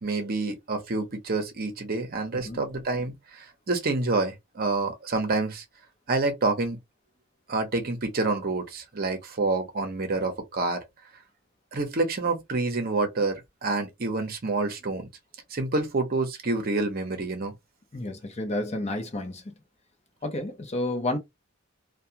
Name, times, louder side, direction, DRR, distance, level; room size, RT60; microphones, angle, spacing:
voice 1, 0.0-5.6 6.1-6.8 7.5-10.8 11.7-15.1 15.5-17.5, right 3 dB, 45° right, 0.7 m, -28 dB
voice 2, 17.9-19.5 20.2-21.2, left 1 dB, 30° left, 0.6 m, -31 dB
2.3 x 2.2 x 2.7 m
head